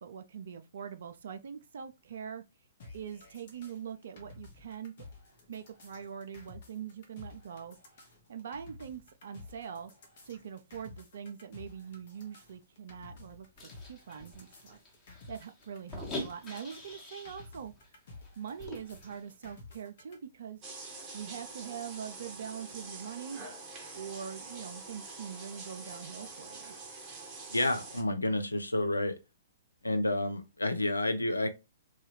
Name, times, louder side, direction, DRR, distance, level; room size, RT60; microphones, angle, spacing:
voice 1, 0.0-2.4 2.9-4.9 5.5-7.8 8.3-9.9 10.2-13.5 13.9-14.8 15.3-17.7 18.4-20.6 21.1-23.4 23.9-26.7, right 7 dB, 55° right, 0.3 m, -43 dB
sound 1, 2.8-20.2, left 3 dB, 50° left, 0.8 m, -53 dB
sound 2, 13.6-17.5 17.8-17.9 18.2-19.3, left 1 dB, 20° left, 1.0 m, -44 dB
sound 3, 20.6-28.0, right 3 dB, 25° right, 0.7 m, -45 dB
voice 2, 27.5-29.2 29.8-31.5, left 1 dB, 80° left, 0.4 m, -30 dB
3.1 x 2.3 x 3.0 m
figure-of-eight pair, 115°, 0 cm